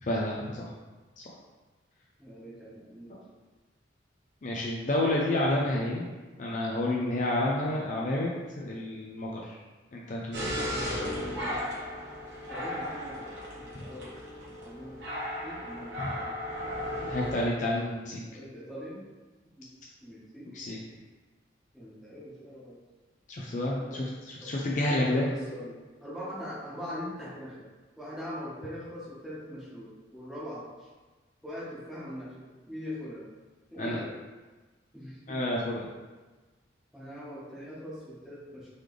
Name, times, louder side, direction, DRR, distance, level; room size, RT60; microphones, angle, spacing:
voice 1, 0.0-0.7 1.2-1.3 4.4-6.1 6.4-8.3 8.6-9.6 9.9-10.5 16.0-16.1 17.1-18.2 20.5-20.8 23.3-24.0 24.4-25.3 33.8-34.0 35.3-35.9, left 1 dB, 40° left, -3 dB, 0.4 m, -29 dB
voice 2, 2.2-3.2 6.8-7.1 10.7-11.6 12.4-13.3 13.5-15.0 15.4-16.4 18.2-19.1 19.5-19.7 20.0-20.5 21.7-22.8 23.9-24.1 24.4-24.5 24.9-27.7 28.0-30.9 31.4-33.3 33.7-34.1 34.9-35.4 36.9-38.7, left 1 dB, ahead, -9 dB, 1.1 m, -42 dB
sound 1, 10.3-17.5, equal, 65° right, 1.1 m, -35 dB
3.9 x 3.2 x 3.2 m, 1.2 s
head